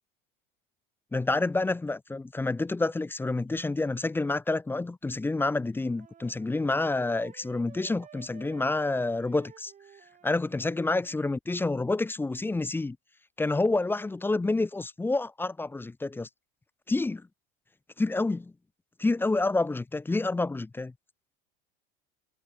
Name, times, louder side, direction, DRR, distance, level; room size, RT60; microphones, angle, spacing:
voice 1, 1.1-9.7 10.2-13.0 13.4-16.3 16.9-17.3 18.0-18.5 19.0-20.9, left 2 dB, 5° left, 0.5 m, -28 dB
Wind instrument woodwind instrument, 5.7-11.2, right 8 dB, 25° right, 0.9 m, -53 dB
hypercardioid pair, 90°, 29 cm